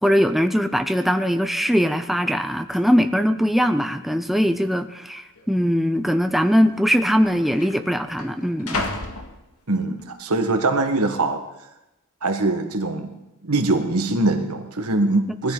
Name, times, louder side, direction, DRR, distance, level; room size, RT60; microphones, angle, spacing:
voice 1, 0.0-8.8, equal, ahead, 7 dB, 0.6 m, -21 dB
sound 1, 1.3-1.4 1.6-2.0 2.7-2.8 3.6-4.1 4.4-4.5 5.3-5.5 6.5-6.6 6.8-10.1 10.5-11.0, left 2 dB, 75° left, 2.0 m, -34 dB
voice 2, 9.7-11.4 12.2-13.1 13.4-15.5, right 2 dB, 75° right, 6 dB, 1.6 m, -22 dB
20.5 x 14.0 x 4.0 m, 0.95 s
head